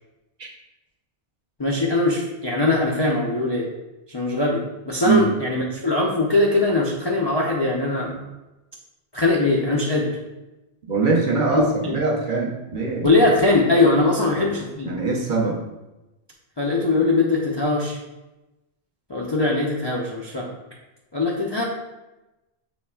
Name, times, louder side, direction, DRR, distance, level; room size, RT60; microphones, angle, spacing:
voice 1, 1.6-3.7 4.1-8.1 9.1-10.1 11.5-11.9 13.0-14.9 16.6-18.0 19.1-20.5 21.1-21.6, left 2 dB, 40° left, -3 dB, 0.3 m, -21 dB
voice 2, 10.9-13.2 14.3-14.5 14.8-15.6, right 4 dB, 50° right, -2 dB, 0.8 m, -22 dB
6.2 x 3.1 x 2.3 m, 1.0 s
omnidirectional pair, 1.1 m